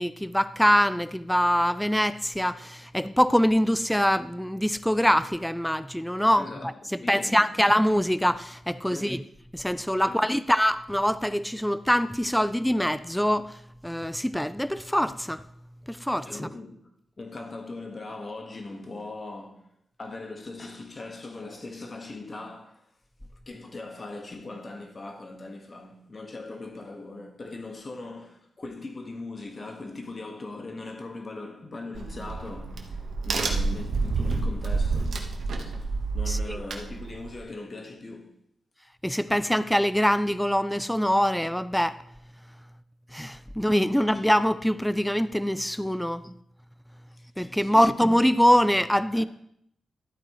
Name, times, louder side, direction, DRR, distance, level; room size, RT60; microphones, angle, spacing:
voice 1, 0.0-6.5 7.1-9.2 9.5-13.6 13.8-15.4 15.9-16.5 36.3-36.6 39.0-42.0 43.1-46.3 47.4-49.2, equal, 5° left, 0.4 m, -24 dB
voice 2, 6.4-7.5 8.9-9.2 10.1-10.2 16.1-19.7 20.0-22.9 23.5-35.3 35.5-38.4 47.1-47.3 47.6-47.9 49.1-49.3, left 2 dB, 35° left, 1.4 m, -40 dB
Crack, 31.9-37.4, right 3 dB, 75° right, 1.2 m, -29 dB
12.5 x 8.8 x 3.0 m
cardioid pair, 95°, 0 cm